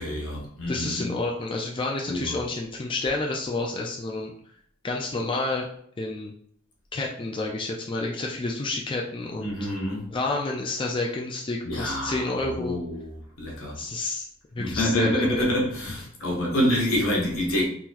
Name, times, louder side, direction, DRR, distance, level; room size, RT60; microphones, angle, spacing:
voice 1, 0.0-1.1 2.1-2.4 9.4-10.0 11.6-12.2 12.5-13.8 14.6-17.6, left 1 dB, 70° left, 1.2 m, -27 dB
voice 2, 0.7-4.3 4.8-5.7 6.0-6.3 6.9-9.5 10.1-12.8 13.7-14.3 14.5-15.5, left 2 dB, 25° left, 0.4 m, -29 dB
3.7 x 2.9 x 2.5 m
head